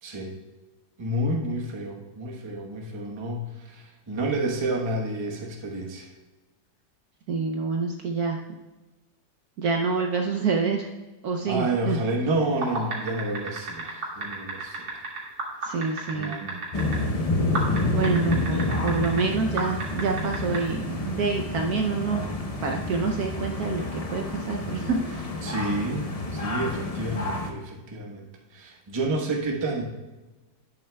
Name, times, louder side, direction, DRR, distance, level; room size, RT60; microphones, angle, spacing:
voice 1, 0.0-0.3 1.0-6.1 11.4-15.0 16.1-16.6 17.5-18.0 25.4-28.3 28.5-29.8, right 1 dB, 20° right, 0 dB, 0.7 m, -30 dB
voice 2, 7.3-8.4 9.6-10.9 11.2-12.0 15.6-16.4 17.9-22.2 22.6-25.3, right 5 dB, 65° right, 2 dB, 1.0 m, -27 dB
sound 1, 12.5-17.0 17.5-19.2 19.6-20.6, right 3 dB, 85° right, 2.7 m, -31 dB
sound 2, 16.7-27.5, left 2 dB, 70° left, 0.3 m, -29 dB
11.0 x 8.6 x 2.2 m, 1.2 s
omnidirectional pair, 2.1 m